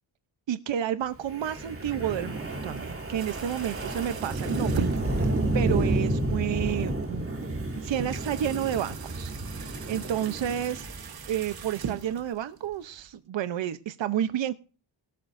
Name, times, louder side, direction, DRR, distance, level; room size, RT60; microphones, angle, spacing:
voice 1, 0.5-4.8 5.1-7.3 7.8-9.3 9.9-10.9 11.3-14.6, right 10 dB, 70° right, 11 dB, 0.8 m, -30 dB
Wind, 1.3-11.6, right 1 dB, 30° right, 3.0 m, -30 dB
sound 1, 3.2-13.2, right 7 dB, 50° right, 1.2 m, -41 dB
18.0 x 11.5 x 2.6 m, 0.36 s
wide cardioid pair, 175°, 46 cm